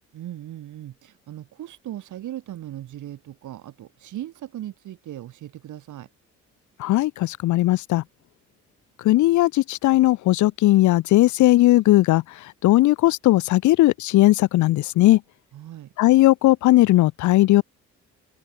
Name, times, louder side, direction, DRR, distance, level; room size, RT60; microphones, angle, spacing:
voice 1, 0.1-6.1 15.5-15.9, right 12 dB, 75° right, 6.4 m, -38 dB
voice 2, 6.8-8.0 9.0-15.2 16.0-17.6, left 16 dB, 75° left, 0.6 m, -18 dB
open air
cardioid pair, 90°, 30 cm